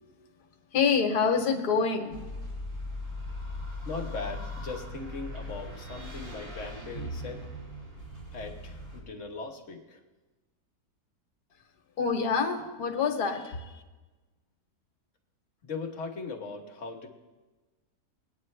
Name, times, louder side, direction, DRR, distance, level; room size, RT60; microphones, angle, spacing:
voice 1, 0.7-2.3 12.0-13.8, left 5 dB, 65° left, 5 dB, 1.6 m, -27 dB
sound 1, 2.1-9.0, left 1 dB, 30° right, 3.6 m, -39 dB
voice 2, 3.8-7.5 8.3-10.0 15.6-17.1, left 3 dB, 50° left, 2 dB, 1.5 m, -39 dB
20.5 x 9.4 x 3.3 m, 1.2 s
omnidirectional pair, 1.8 m